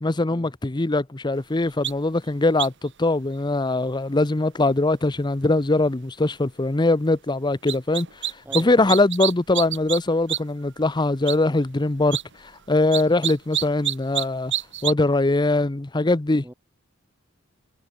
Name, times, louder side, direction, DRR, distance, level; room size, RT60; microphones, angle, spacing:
voice 1, 0.0-14.5 14.8-16.4, left 2 dB, 20° left, 0.7 m, -22 dB
sound 1, 1.8-1.9 2.6-2.9 7.7-8.6 8.9-10.0 10.3-10.4 10.8-10.9 11.3-11.4 12.0-12.2 12.9-14.3 14.5-14.9, right 11 dB, 60° right, 1.9 m, -26 dB
voice 2, 8.4-9.0 16.4-16.5, right 1 dB, 10° right, 1.0 m, -40 dB
head